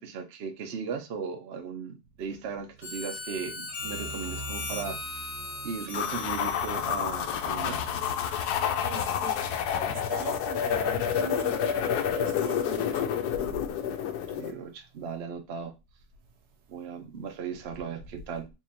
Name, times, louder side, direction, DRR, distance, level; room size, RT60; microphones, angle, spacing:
voice 1, 0.0-5.3 5.6-7.8 14.4-15.7 16.7-18.5, right 6 dB, 55° right, 0.8 m, -37 dB
Harmonica, 2.8-8.0, left 2 dB, 45° left, 0.9 m, -39 dB
voice 2, 3.8-5.8 6.7-7.0 7.5-7.6 8.3-9.6 9.9-13.9, right 4 dB, 85° right, 1.3 m, -42 dB
sound 1, 5.9-14.5, left 8 dB, 80° left, 1.1 m, -29 dB
3.8 x 3.0 x 2.7 m
omnidirectional pair, 1.7 m